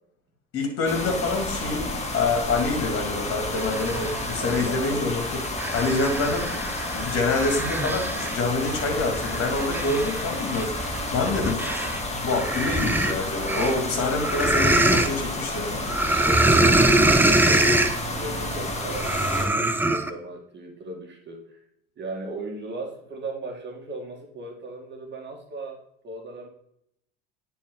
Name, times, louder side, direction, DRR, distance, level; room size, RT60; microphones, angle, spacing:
voice 1, 0.5-5.4 5.7-6.5 6.9-10.7 11.1-11.6 12.2-15.9, left 3 dB, 50° left, 2 dB, 2.7 m, -26 dB
sound 1, 0.9-19.5, left 2 dB, 20° left, 1.8 m, -31 dB
sound 2, 3.6-4.7 5.2-12.0 12.3-15.1 15.9-18.0 18.9-20.1, right 2 dB, 5° right, 0.7 m, -24 dB
voice 2, 4.4-5.0 16.2-16.8 17.1-17.8 18.1-21.6 22.0-25.8 26.0-26.5, right 1 dB, 40° right, 1 dB, 2.0 m, -37 dB
10.0 x 4.3 x 4.0 m, 0.73 s
hypercardioid pair, 80°, 29 cm